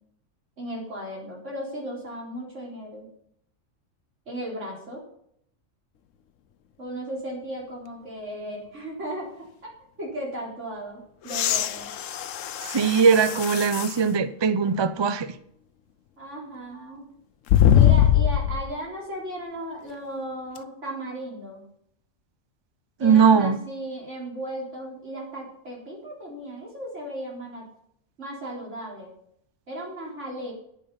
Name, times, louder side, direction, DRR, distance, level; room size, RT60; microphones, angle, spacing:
voice 1, 0.6-3.1 4.3-5.0 6.8-9.5 10.0-11.9 16.2-17.0 17.7-21.6 23.0-27.7 28.2-29.1 29.7-30.5, right 1 dB, 70° right, -3 dB, 4.3 m, -36 dB
sound 1, 11.3-14.0 14.7-14.8 17.5-18.7 20.6-20.7, left 10 dB, 80° left, 1.0 m, -21 dB
voice 2, 12.7-15.3 23.0-23.6, right 6 dB, 35° right, 12 dB, 0.4 m, -20 dB
10.0 x 8.7 x 5.6 m, 0.69 s
omnidirectional pair, 1.3 m